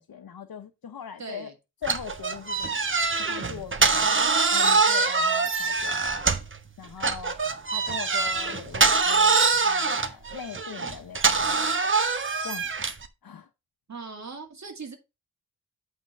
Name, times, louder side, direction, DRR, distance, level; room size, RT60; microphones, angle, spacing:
voice 1, 0.0-1.5 1.8-2.8 3.2-4.1 4.5-6.1 6.8-7.3 7.7-11.9 12.4-12.6 13.2-13.5, left 8 dB, 75° left, 1.0 m, -40 dB
voice 2, 1.2-1.5 13.9-15.0, right 4 dB, 50° right, 2.3 m, -39 dB
sound 1, 1.8-6.6 7.0-13.1, right 4 dB, 35° right, 1.0 m, -24 dB
8.6 x 3.8 x 5.4 m
wide cardioid pair, 125°, 36 cm